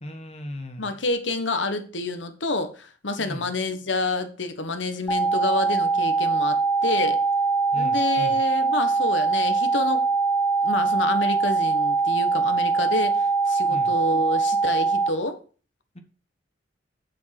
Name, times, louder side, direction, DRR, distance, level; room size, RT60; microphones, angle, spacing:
voice 1, 0.0-0.9 3.2-3.5 7.7-8.4 13.7-13.9, left 1 dB, 35° left, 6 dB, 1.5 m, -36 dB
voice 2, 0.8-7.2 7.7-10.1 10.6-15.4, left 2 dB, 85° left, 8 dB, 1.4 m, -28 dB
sound 1, 5.1-15.1, right 4 dB, 10° left, 1.1 m, -22 dB
7.5 x 6.2 x 6.0 m, 0.38 s
head